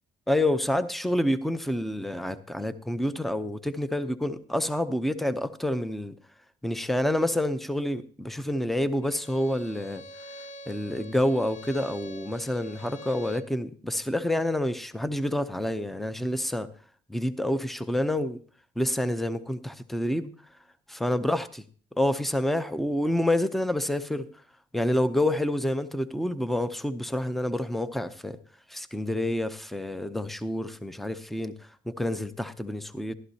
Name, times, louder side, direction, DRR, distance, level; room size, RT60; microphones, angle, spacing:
voice 1, 0.3-6.1 6.6-10.0 10.7-16.7 17.1-18.4 18.8-20.3 20.9-21.6 21.9-24.3 24.7-28.4 28.7-31.5 31.9-33.1, left 1 dB, ahead, 0.7 m, -28 dB
Bowed string instrument, 9.0-13.6, equal, 85° left, 0.8 m, -45 dB
14.5 x 12.0 x 2.8 m
cardioid pair, 90°, 20 cm